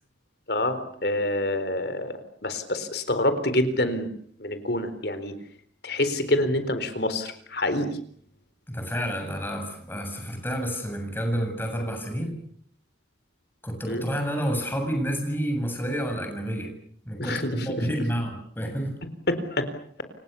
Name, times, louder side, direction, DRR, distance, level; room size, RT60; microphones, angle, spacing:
voice 1, 0.5-4.1 4.4-5.3 5.8-8.0 13.9-14.1 17.2-17.7 19.3-19.7, left 1 dB, 55° left, 11 dB, 4.1 m, -27 dB
voice 2, 8.7-12.4 13.6-16.7 17.1-18.9, equal, 10° left, 4 dB, 7.8 m, -29 dB
29.5 x 26.5 x 7.0 m, 0.63 s
head